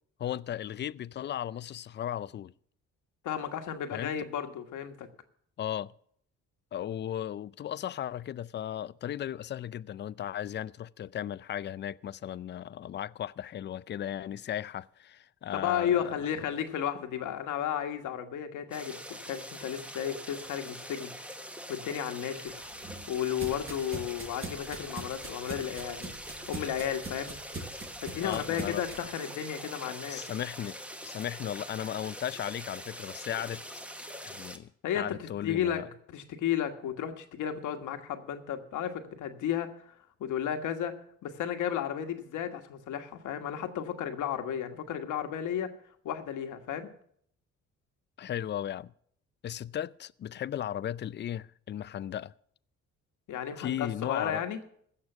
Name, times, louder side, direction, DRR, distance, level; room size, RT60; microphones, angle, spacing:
voice 1, 0.2-2.5 3.9-4.1 5.6-5.9 6.7-16.2 28.2-28.8 29.8-30.8 31.0-33.6 34.2-35.9 48.2-48.9 49.4-52.3 53.6-54.4, left 10 dB, 35° left, 0.4 m, -36 dB
voice 2, 3.2-5.1 15.5-19.0 19.3-21.1 21.7-22.6 23.1-26.1 26.5-27.4 28.0-30.2 34.8-35.8 36.1-39.9 40.2-45.7 46.0-46.9 53.3-54.6, left 9 dB, 80° left, 1.5 m, -33 dB
sound 1, 18.7-34.6, equal, 5° right, 1.1 m, -43 dB
sound 2, 22.5-29.0, right 3 dB, 45° right, 4.7 m, -43 dB
16.0 x 6.8 x 7.0 m
cardioid pair, 90°, 30 cm